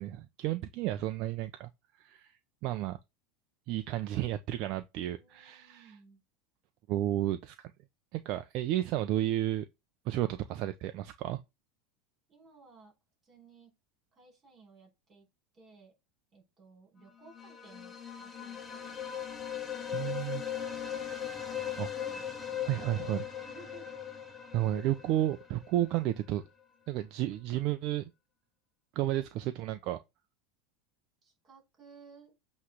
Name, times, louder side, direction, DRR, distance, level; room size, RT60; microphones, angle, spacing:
voice 1, 0.0-1.7 2.0-2.3 2.6-3.0 3.7-5.9 6.9-7.7 8.1-9.7 10.1-11.4 19.9-20.4 21.7-21.9 22.6-23.3 24.5-26.4 26.9-28.1 28.9-30.0, right 13 dB, 55° right, 0.7 m, -32 dB
voice 2, 5.1-6.2 12.3-12.9 13.2-13.7 14.1-15.3 15.5-15.9 16.3-19.0 22.0-23.0 23.4-23.9 31.2-32.3, right 4 dB, 30° right, 5.3 m, -58 dB
sound 1, 17.2-26.1, left 9 dB, 20° left, 1.5 m, -39 dB
8.2 x 3.3 x 6.4 m
supercardioid pair, 125°, 0 cm